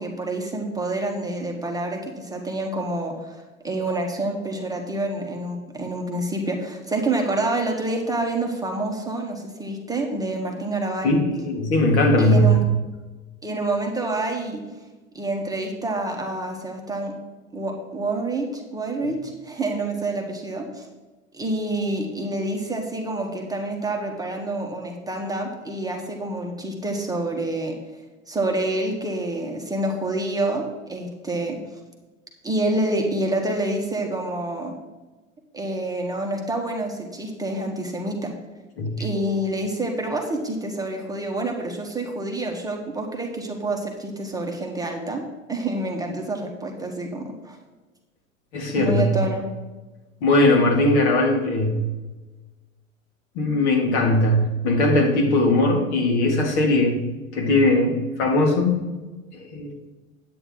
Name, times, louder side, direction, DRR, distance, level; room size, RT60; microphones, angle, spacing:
voice 1, 0.0-11.1 12.2-12.6 13.4-14.6 15.1-17.1 17.5-20.9 21.3-27.8 28.3-31.6 32.4-34.7 35.5-38.3 39.0-45.2 45.5-47.6 48.7-49.4, right 2 dB, 10° right, 0 dB, 1.3 m, -27 dB
voice 2, 11.0-12.6 19.0-19.1 38.8-39.0 48.5-49.1 50.2-51.8 53.4-57.0 57.3-58.9 59.3-59.7, left 1 dB, 55° left, 2 dB, 2.3 m, -19 dB
9.8 x 8.8 x 3.8 m, 1.2 s
figure-of-eight pair, 95°, 41 cm